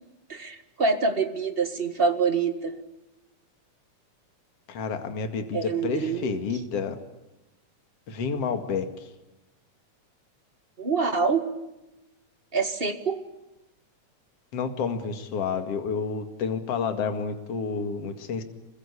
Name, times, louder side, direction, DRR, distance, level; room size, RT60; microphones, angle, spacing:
voice 1, 0.3-2.7 5.5-6.4 10.8-11.5 12.5-13.2, right 4 dB, 25° right, 8 dB, 1.5 m, -26 dB
voice 2, 4.7-7.0 8.1-9.1 14.5-18.4, left 5 dB, 55° left, 7 dB, 3.0 m, -30 dB
27.0 x 23.0 x 8.4 m, 0.99 s
omnidirectional pair, 3.3 m